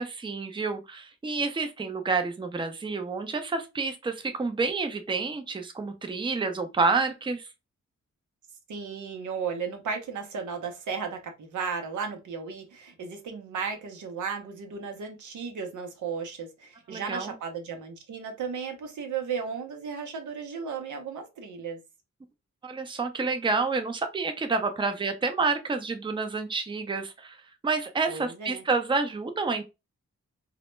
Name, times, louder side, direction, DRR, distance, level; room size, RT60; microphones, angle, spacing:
voice 1, 0.0-7.4 16.9-17.3 22.6-27.4 27.6-29.6, right 4 dB, 15° right, 0.4 m, -29 dB
voice 2, 8.7-21.8 28.1-28.6, right 6 dB, 90° right, 0.6 m, -35 dB
2.1 x 2.1 x 3.0 m
cardioid pair, 65°, 29 cm